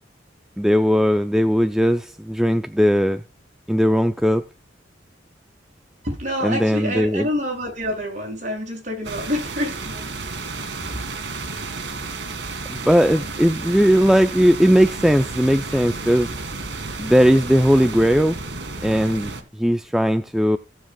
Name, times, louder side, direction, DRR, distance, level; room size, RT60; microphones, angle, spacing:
voice 1, 0.6-3.2 3.7-4.5 6.4-7.3 12.7-16.4 17.0-18.4 18.8-20.6, equal, 5° right, 0.5 m, -18 dB
voice 2, 6.0-10.1 10.8-10.9 11.2-11.3, left 1 dB, 40° right, 6.6 m, -27 dB
sound 1, 9.0-19.4, right 3 dB, 65° right, 2.1 m, -32 dB
17.5 x 7.4 x 2.3 m
head